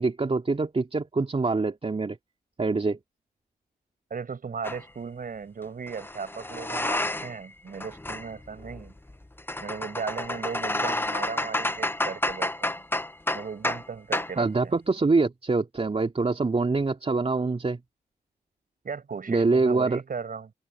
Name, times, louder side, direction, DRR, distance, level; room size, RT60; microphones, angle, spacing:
voice 1, 0.0-2.2 2.6-3.0 14.4-17.8 19.3-20.0, right 3 dB, 35° right, 2.9 m, -25 dB
voice 2, 4.1-8.9 9.6-12.8 13.3-14.7 18.8-20.5, right 5 dB, 50° right, 7.5 m, -36 dB
sound 1, 4.6-4.8 5.9-7.5 7.7-13.9 14.1-14.4, left 1 dB, 10° left, 1.3 m, -30 dB
supercardioid pair, 45°, 18 cm